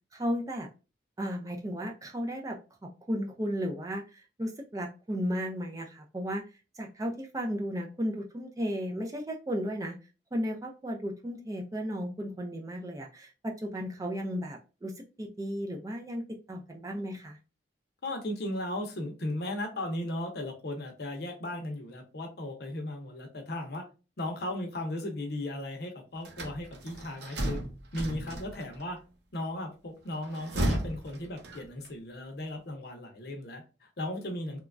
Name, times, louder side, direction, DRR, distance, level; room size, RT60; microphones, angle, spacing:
voice 1, 0.1-0.7 1.2-2.6 2.8-6.4 6.8-10.0 10.3-16.2 16.5-17.4, equal, 20° right, 3 dB, 0.3 m, -34 dB
voice 2, 18.0-23.8 24.2-27.6 27.9-29.0 29.3-34.6, left 1 dB, 55° left, 4 dB, 0.6 m, -36 dB
sound 1, 26.2-28.8 30.1-31.9, right 1 dB, 60° right, 0.7 m, -34 dB
3.0 x 2.2 x 2.4 m, 0.31 s
head